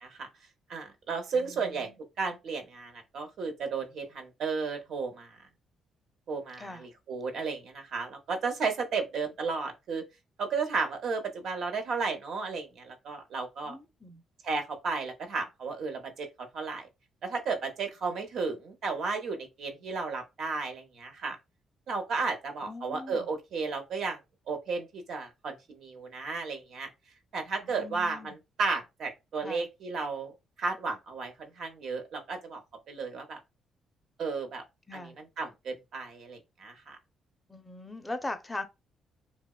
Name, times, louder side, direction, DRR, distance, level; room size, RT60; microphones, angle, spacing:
voice 1, 0.7-1.9 2.2-5.4 6.3-10.0 10.4-13.8 14.4-16.9 17.2-21.4 21.9-24.2 24.5-26.9 27.3-30.3 30.6-32.6 32.9-33.4 34.2-34.6 34.9-37.0, right 4 dB, 70° right, 0.7 m, -33 dB
voice 2, 1.3-1.9 6.6-6.9 13.6-14.2 22.6-23.3 27.6-28.4 29.4-29.7 34.9-35.2 37.5-38.6, left 2 dB, 15° left, 0.5 m, -40 dB
2.8 x 2.1 x 2.3 m
cardioid pair, 90°, 0 cm